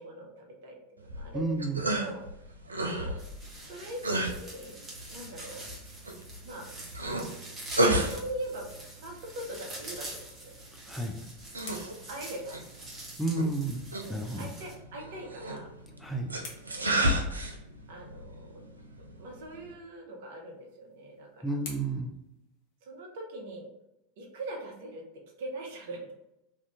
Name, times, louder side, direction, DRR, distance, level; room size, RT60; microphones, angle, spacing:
voice 1, 0.0-1.6 1.9-2.5 2.8-3.2 3.7-4.8 5.1-5.6 6.4-6.7 7.7-8.7 9.0-10.6 11.7-12.6 14.0-15.7 16.7-17.1 17.9-18.6 19.0-21.6 22.8-23.7 24.2-25.0 25.4-26.1, right 1 dB, 60° right, 1 dB, 0.7 m, -42 dB
sound 1, 1.0-19.7, right 1 dB, 80° right, 0.3 m, -34 dB
voice 2, 1.3-1.8 10.9-11.2 13.2-13.8 14.1-14.5 16.0-16.3 21.4-22.1, right 2 dB, 5° left, 2 dB, 0.4 m, -31 dB
sound 2, 3.2-14.7, right 1 dB, 20° right, 1.0 m, -46 dB
sound 3, 15.3-17.8 20.0-23.2, left 3 dB, 55° left, 0.8 m, -52 dB
2.7 x 2.4 x 3.4 m, 0.88 s
figure-of-eight pair, 80°, 0 cm